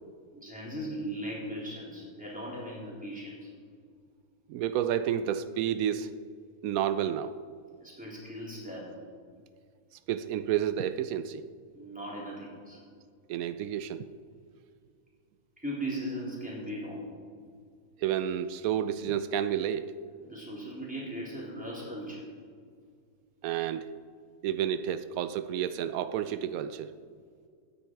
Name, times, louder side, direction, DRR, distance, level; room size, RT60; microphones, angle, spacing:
voice 1, 0.3-3.5 7.8-8.9 11.7-12.8 15.6-17.1 20.2-22.3, equal, 5° right, -6 dB, 3.7 m, -38 dB
voice 2, 4.5-6.1 6.6-7.4 10.1-11.4 13.3-14.0 18.0-20.0 23.4-23.9 24.4-26.9, right 10 dB, 85° right, 12 dB, 1.0 m, -30 dB
16.5 x 9.7 x 4.6 m, 2.1 s
omnidirectional pair, 1.4 m